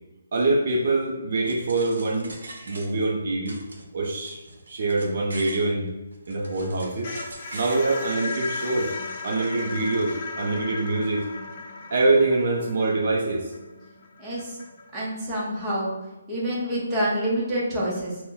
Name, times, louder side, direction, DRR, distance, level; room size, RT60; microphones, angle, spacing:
voice 1, 0.3-2.3 2.7-3.6 3.9-4.4 4.7-5.9 6.3-7.1 7.5-8.9 9.2-11.3 11.9-13.5, right 2 dB, 45° right, 0 dB, 0.4 m, -24 dB
sound 1, 1.4-3.2 3.4-5.7 6.1-7.9, right 2 dB, 85° right, 0.7 m, -43 dB
sound 2, 6.3-15.2, left 3 dB, 30° left, 0.4 m, -37 dB
voice 2, 14.2-14.6 14.9-15.9 16.3-18.2, right 1 dB, 10° right, -7 dB, 0.7 m, -27 dB
2.8 x 2.0 x 3.7 m, 1.1 s
hypercardioid pair, 170°, 0 cm